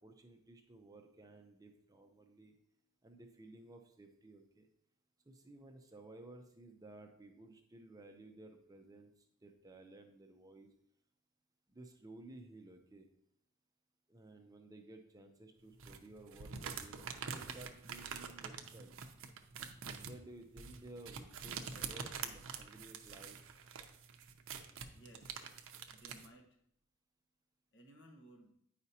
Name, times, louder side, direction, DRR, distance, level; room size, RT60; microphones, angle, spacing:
voice 1, 0.0-2.6 3.0-4.7 5.3-10.7 11.7-13.1 14.1-19.1 19.8-23.4, right 2 dB, 15° right, 4 dB, 0.5 m, -56 dB
sound 1, 15.8-26.3, right 6 dB, 65° right, 0.6 m, -46 dB
voice 2, 24.9-25.5 25.9-26.5 27.7-28.5, right 1 dB, 55° left, 1 dB, 1.4 m, -59 dB
9.4 x 5.0 x 2.8 m, 0.71 s
head